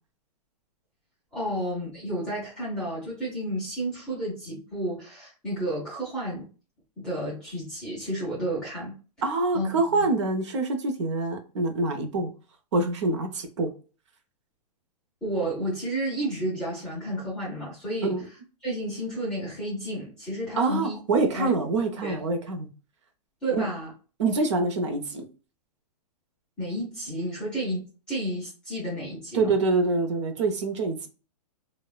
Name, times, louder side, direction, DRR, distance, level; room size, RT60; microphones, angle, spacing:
voice 1, 1.3-6.5 7.0-8.9 9.5-9.7 10.0-10.1 15.2-18.2 18.6-21.5 22.0-22.2 23.4-23.9 26.6-29.5, right 1 dB, 5° left, 0.4 m, -31 dB
voice 2, 9.2-12.3 12.7-13.7 18.0-18.3 20.6-22.7 23.5-23.6 24.2-25.2 29.3-31.1, right 3 dB, 45° right, 0.5 m, -25 dB
3.2 x 2.0 x 2.2 m
hypercardioid pair, 175°, 20 cm